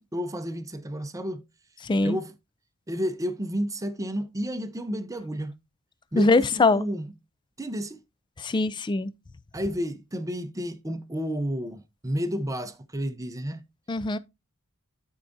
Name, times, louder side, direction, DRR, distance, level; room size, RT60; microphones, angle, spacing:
voice 1, 0.0-1.4 2.0-2.3 2.9-5.6 6.1-7.1 7.6-8.0 9.5-13.6, equal, 15° right, 0.7 m, -31 dB
voice 2, 1.8-2.2 6.1-6.8 8.4-9.1 13.9-14.2, left 3 dB, 20° left, 0.4 m, -22 dB
13.5 x 4.6 x 2.6 m
head